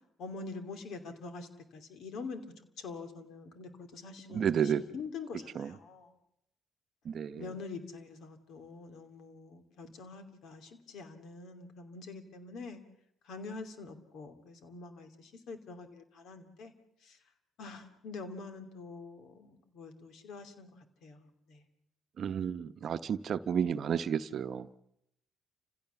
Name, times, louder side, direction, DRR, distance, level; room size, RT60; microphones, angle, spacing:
voice 1, 0.2-6.1 7.3-12.8 13.2-16.7 17.0-17.2 17.6-21.6, left 4 dB, 75° left, 8 dB, 2.8 m, -45 dB
voice 2, 4.3-4.8 5.5-5.7 7.0-7.5 22.2-24.9, right 8 dB, 60° right, 12 dB, 0.8 m, -32 dB
29.0 x 16.0 x 7.1 m, 0.79 s
supercardioid pair, 65°, 0 cm